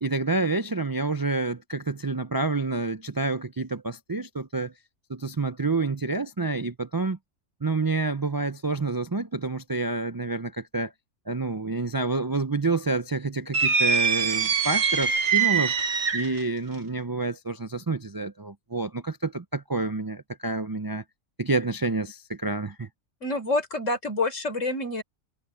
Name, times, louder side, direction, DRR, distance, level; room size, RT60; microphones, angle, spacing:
voice 1, 0.0-4.7 5.1-7.2 7.6-10.9 11.3-15.7 16.1-21.0 21.4-22.9, right 3 dB, 35° right, 0.3 m, -28 dB
sound 1, 13.5-16.4, right 6 dB, 70° right, 1.4 m, -23 dB
voice 2, 23.2-25.0, left 2 dB, 85° left, 4.4 m, -27 dB
omnidirectional pair, 1.3 m